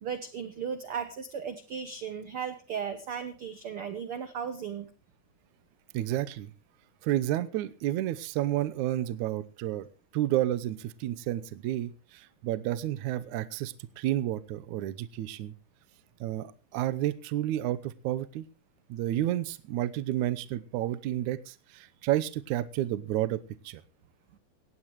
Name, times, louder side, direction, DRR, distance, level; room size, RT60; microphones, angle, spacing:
voice 1, 0.0-4.9, right 7 dB, 85° right, 11 dB, 1.2 m, -36 dB
voice 2, 5.9-6.5 7.0-9.9 10.1-15.5 16.2-18.5 18.9-23.8, right 13 dB, 70° right, 15 dB, 2.0 m, -31 dB
18.0 x 16.5 x 3.1 m, 0.33 s
omnidirectional pair, 4.1 m